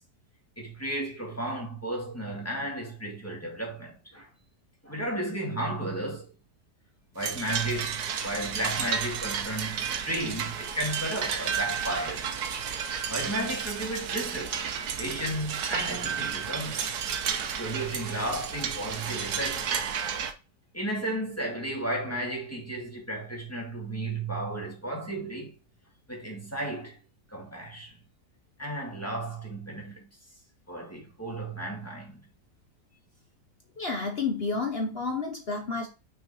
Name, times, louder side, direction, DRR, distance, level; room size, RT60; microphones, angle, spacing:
voice 1, 0.6-4.3 4.8-6.3 7.1-12.3 13.1-14.7 15.0-16.9 17.6-19.7 20.7-25.5 26.1-27.0 27.3-28.0 28.6-30.1 30.7-32.2, right 1 dB, 10° left, 1.9 m, -33 dB
sound 1, 7.2-20.3, right 7 dB, 70° right, 1.4 m, -32 dB
voice 2, 33.8-35.9, left 4 dB, 45° left, 0.9 m, -30 dB
6.2 x 4.5 x 4.2 m
omnidirectional pair, 1.8 m